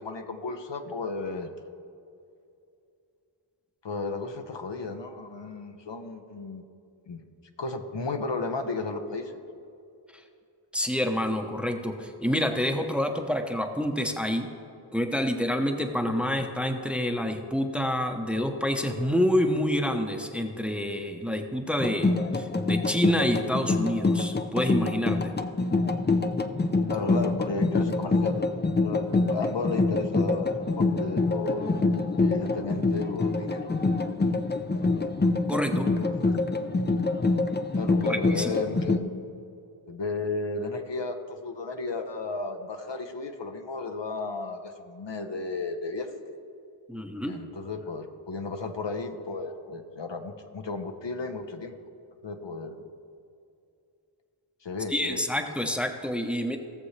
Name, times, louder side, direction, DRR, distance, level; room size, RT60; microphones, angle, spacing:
voice 1, 0.0-1.5 3.8-6.6 7.1-7.2 7.6-9.4 16.1-16.4 26.9-28.5 28.8-31.7 32.2-33.7 36.0-36.4 37.7-39.0 39.9-46.4 47.2-51.7 52.2-52.9 54.6-55.2, left 3 dB, 60° left, 6 dB, 0.8 m, -34 dB
voice 2, 10.7-14.5 14.9-25.3 35.5-35.9 38.1-38.5 46.9-47.3 54.9-56.6, equal, ahead, 5 dB, 0.8 m, -28 dB
sound 1, 21.8-39.0, left 3 dB, 20° left, 0.5 m, -26 dB
17.5 x 7.0 x 3.2 m, 2.5 s
wide cardioid pair, 50°, 50 cm